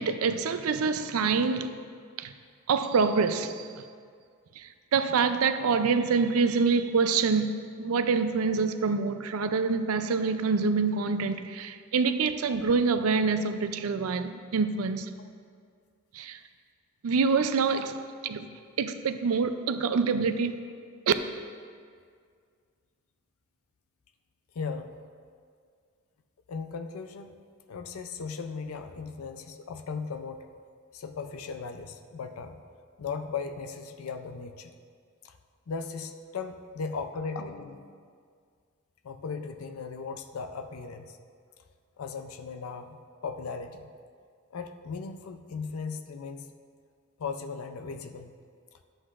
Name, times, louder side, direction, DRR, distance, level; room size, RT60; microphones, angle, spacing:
voice 1, 0.0-1.7 2.2-2.3 2.7-3.8 4.6-15.1 16.1-16.4 17.0-17.9 18.2-18.5 18.8-20.5 21.1-21.2, right 5 dB, 85° right, 10 dB, 0.4 m, -26 dB
voice 2, 24.5-25.0 26.5-27.3 27.7-30.5 30.9-32.6 33.0-34.7 35.2-35.4 35.7-38.0 39.0-41.2 42.0-43.0 43.2-43.9 44.5-46.5 47.2-48.3, left 5 dB, 80° left, 7 dB, 0.5 m, -37 dB
11.5 x 7.8 x 2.5 m, 2.1 s
head